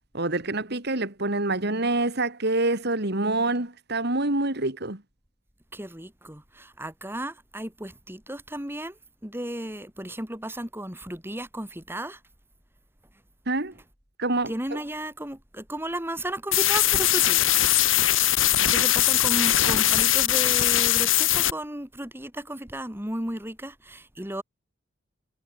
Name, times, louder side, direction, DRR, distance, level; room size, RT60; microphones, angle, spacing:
voice 1, 0.1-5.0 13.5-13.7 14.2-14.8, right 2 dB, 55° right, 3.1 m, -26 dB
voice 2, 5.7-8.9 9.2-12.2 14.5-17.5 18.1-24.4, right 1 dB, 10° right, 4.5 m, -34 dB
sound 1, 16.5-21.5, left 13 dB, 85° left, 3.4 m, -21 dB
head